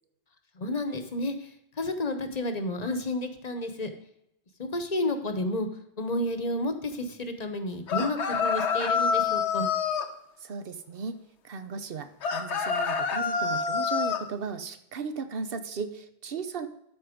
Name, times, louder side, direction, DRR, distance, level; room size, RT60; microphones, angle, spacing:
voice 1, 0.6-1.3 1.8-3.9 4.6-5.7 6.0-9.7, left 1 dB, 40° left, 8 dB, 1.0 m, -31 dB
sound 1, 7.9-10.1 12.2-14.2, left 6 dB, 90° left, 1.1 m, -27 dB
voice 2, 10.4-11.2 11.4-16.7, right 5 dB, 60° right, 10 dB, 1.0 m, -36 dB
13.0 x 4.4 x 5.0 m, 0.81 s
omnidirectional pair, 1.1 m